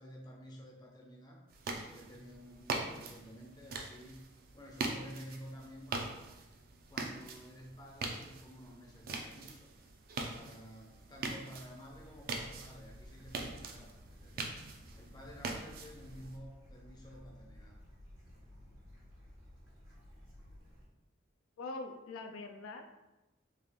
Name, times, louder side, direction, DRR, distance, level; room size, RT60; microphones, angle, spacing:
voice 1, 0.0-1.4 1.8-4.2 4.5-6.3 6.9-9.7 10.3-14.6 14.9-17.8, equal, 20° left, -1 dB, 0.5 m, -52 dB
sound 1, 1.5-16.4, right 3 dB, 45° right, 0.3 m, -43 dB
Bird / Stream, 11.9-20.8, left 1 dB, 85° right, 1.2 m, -55 dB
voice 2, 21.6-22.9, left 3 dB, 80° left, 5 dB, 0.3 m, -43 dB
3.3 x 2.4 x 3.5 m, 1.0 s
head